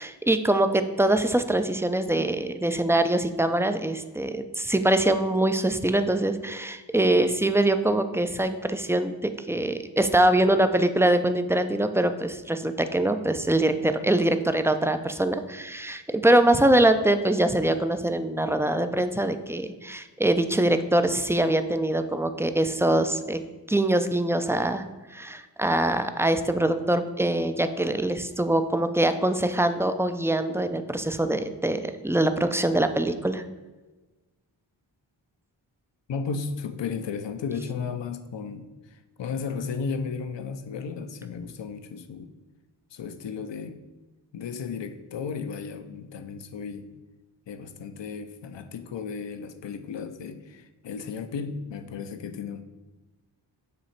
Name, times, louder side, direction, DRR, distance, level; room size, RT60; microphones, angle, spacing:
voice 1, 0.0-23.4 23.7-24.8 25.1-33.4, right 1 dB, 5° right, 9 dB, 0.3 m, -23 dB
voice 2, 36.1-42.3 42.9-43.8 44.3-46.9 47.5-52.6, left 5 dB, 70° left, 9 dB, 0.6 m, -34 dB
7.4 x 3.1 x 4.4 m, 1.2 s
cardioid pair, 45°, 47 cm